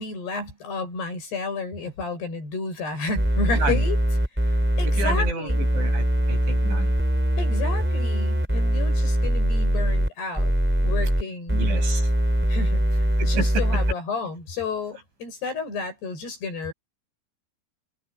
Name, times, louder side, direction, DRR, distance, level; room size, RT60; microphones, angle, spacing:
voice 1, 0.0-4.0 4.8-5.6 7.4-11.6 12.5-12.8 13.2-16.7, left 4 dB, 55° left, 9.3 m, -31 dB
sound 1, 3.2-10.1 10.4-11.2 11.5-13.9, equal, 5° right, 2.9 m, -22 dB
voice 2, 4.9-6.9 11.5-12.1 13.2-13.6, right 3 dB, 60° right, 9.0 m, -31 dB
omnidirectional pair, 5.8 m